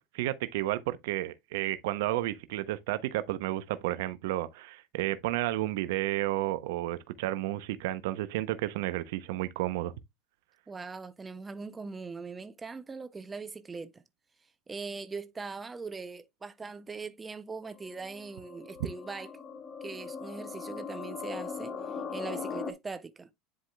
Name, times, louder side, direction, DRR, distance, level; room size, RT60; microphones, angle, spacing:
voice 1, 0.0-9.9, right 15 dB, 80° right, 0.6 m, -32 dB
voice 2, 10.7-14.0 14.7-19.3 19.8-23.3, right 4 dB, 15° right, 0.5 m, -41 dB
sound 1, 17.6-22.7, left 5 dB, 30° left, 1.2 m, -40 dB
10.0 x 4.7 x 2.2 m
supercardioid pair, 115°, 0 cm